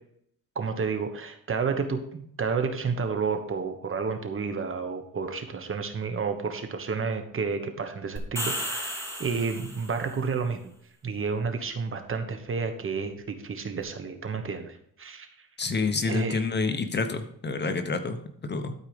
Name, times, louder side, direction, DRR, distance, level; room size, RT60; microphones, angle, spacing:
voice 1, 0.5-10.6 11.0-15.3 16.0-16.4, right 5 dB, 40° right, 7 dB, 1.3 m, -30 dB
sound 1, 8.2-10.1, equal, 10° left, 2.3 m, -34 dB
voice 2, 15.6-18.7, left 4 dB, 30° left, 8 dB, 0.9 m, -28 dB
12.0 x 4.8 x 5.0 m, 0.68 s
cardioid pair, 105°, 32 cm